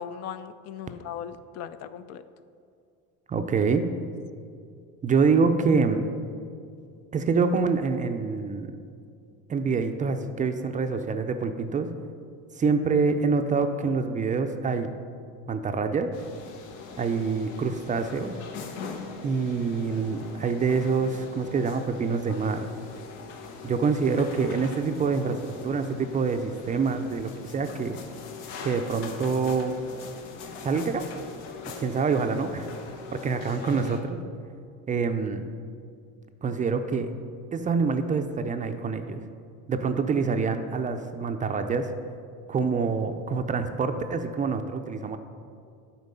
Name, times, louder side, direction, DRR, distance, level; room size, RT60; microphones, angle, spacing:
voice 1, 0.0-2.2, left 8 dB, 50° left, 12 dB, 0.4 m, -38 dB
voice 2, 3.3-3.9 5.0-6.1 7.1-8.7 9.5-11.9 12.6-14.9 15.5-16.3 17.0-18.3 19.2-22.7 23.6-28.0 28.6-29.8 30.6-31.0 31.8-32.7 33.1-34.2 34.9-35.5 36.4-37.1 37.5-39.2 39.7-41.9 42.5-45.2, right 5 dB, 25° right, 7 dB, 0.4 m, -26 dB
sound 1, 16.1-34.0, left 5 dB, 90° left, 0.9 m, -41 dB
8.1 x 4.4 x 5.4 m, 2.4 s
supercardioid pair, 105°, 32 cm